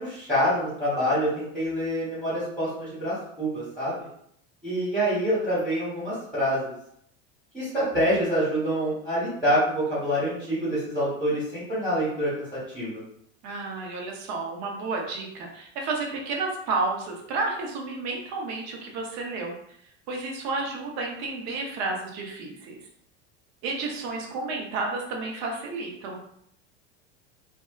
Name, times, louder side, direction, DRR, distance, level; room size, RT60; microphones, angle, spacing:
voice 1, 0.0-4.1 4.6-6.7 7.5-13.0, equal, ahead, -10 dB, 1.2 m, -26 dB
voice 2, 13.4-19.5 20.1-22.8 23.6-26.2, right 3 dB, 50° right, 1 dB, 0.8 m, -31 dB
2.6 x 2.2 x 2.3 m, 0.71 s
supercardioid pair, 130°, 34 cm